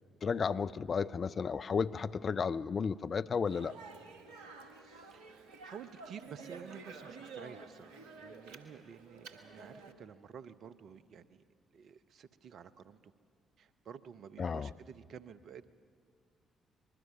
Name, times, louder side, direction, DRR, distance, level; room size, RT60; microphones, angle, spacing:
voice 1, 0.2-3.7 14.4-14.7, left 6 dB, 45° left, 15 dB, 0.5 m, -33 dB
Speech, 3.5-9.9, right 4 dB, 75° right, 1.4 m, -51 dB
voice 2, 4.8-11.4 11.7-13.1 13.6-15.7, right 7 dB, 60° right, 13 dB, 0.8 m, -51 dB
25.0 x 21.0 x 6.2 m, 2.1 s
figure-of-eight pair, 45°, 0 cm